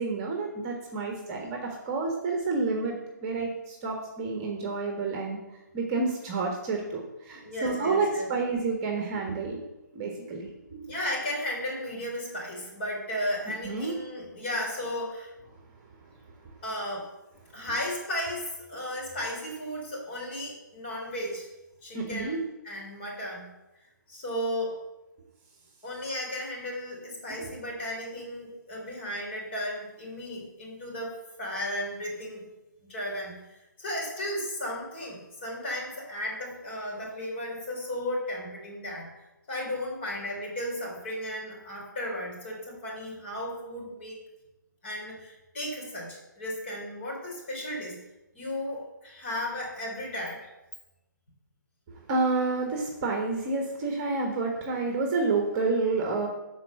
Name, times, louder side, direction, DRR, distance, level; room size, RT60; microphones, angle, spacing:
voice 1, 0.0-2.9 3.2-5.4 5.7-9.6 9.9-10.9 13.6-14.0 21.9-22.4 27.4-27.5 52.1-56.3, right 3 dB, 20° right, 2 dB, 1.4 m, -29 dB
voice 2, 7.4-8.3 10.9-15.3 16.6-17.1 17.5-21.5 21.8-22.4 22.6-23.5 24.1-24.8 25.8-32.4 32.9-39.1 39.5-44.2 44.8-48.0 48.3-50.5, left 1 dB, 35° left, -2 dB, 3.9 m, -35 dB
12.5 x 4.7 x 6.9 m, 1.0 s
figure-of-eight pair, 135°, 10 cm